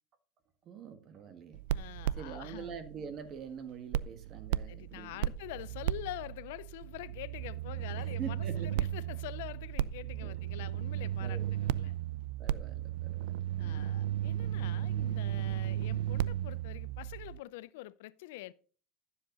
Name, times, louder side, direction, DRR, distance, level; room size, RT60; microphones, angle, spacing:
voice 1, 0.6-1.9 2.2-5.3 8.0-8.8 10.2-10.4 11.0-11.5 12.4-13.9, right 7 dB, 40° right, 1.7 m, -45 dB
sound 1, 1.5-3.6 3.9-17.4, right 12 dB, 90° right, 0.3 m, -35 dB
voice 2, 1.7-2.8 4.7-12.0 13.6-18.5, left 17 dB, 90° left, 0.5 m, -45 dB
11.5 x 7.5 x 4.0 m
cardioid pair, 140°, 0 cm